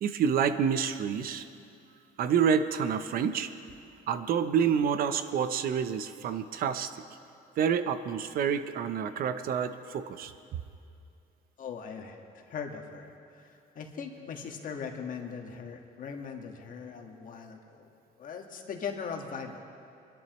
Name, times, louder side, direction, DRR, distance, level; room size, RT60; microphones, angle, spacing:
voice 1, 0.0-1.5 2.2-3.5 4.1-6.9 7.6-10.3, right 7 dB, 60° right, 11 dB, 0.7 m, -28 dB
voice 2, 11.6-19.6, left 6 dB, 55° left, 3 dB, 1.6 m, -40 dB
24.5 x 11.5 x 3.1 m, 2.5 s
cardioid pair, 110°, 17 cm